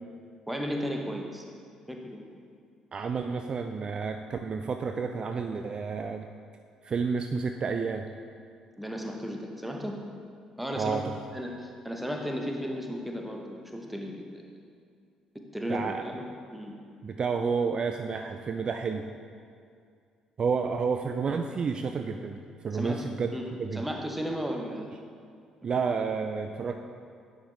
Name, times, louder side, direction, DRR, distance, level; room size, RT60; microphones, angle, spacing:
voice 1, 0.5-1.4 1.9-2.3 8.8-10.0 10.6-11.0 11.3-14.4 15.5-16.7 22.7-23.4 23.7-25.0, equal, 5° right, 1 dB, 0.9 m, -35 dB
voice 2, 2.9-6.3 6.8-8.0 10.7-11.1 15.7-16.0 17.0-19.0 20.4-23.3 23.6-23.9 25.6-26.7, right 5 dB, 35° right, 5 dB, 0.3 m, -30 dB
10.0 x 4.4 x 3.4 m, 2.3 s
figure-of-eight pair, 45°, 2 cm